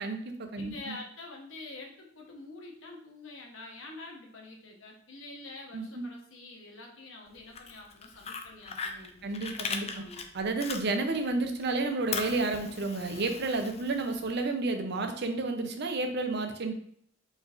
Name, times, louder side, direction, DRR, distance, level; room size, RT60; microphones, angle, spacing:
voice 1, 0.0-1.0 5.7-6.1 9.2-10.0 10.3-16.7, right 3 dB, 60° right, 6 dB, 0.6 m, -31 dB
voice 2, 0.6-10.3, left 2 dB, 80° left, 0 dB, 1.1 m, -47 dB
Fire, 7.4-11.3 11.6-14.4, left 5 dB, 30° left, 0.4 m, -39 dB
4.7 x 4.3 x 2.5 m, 0.64 s
head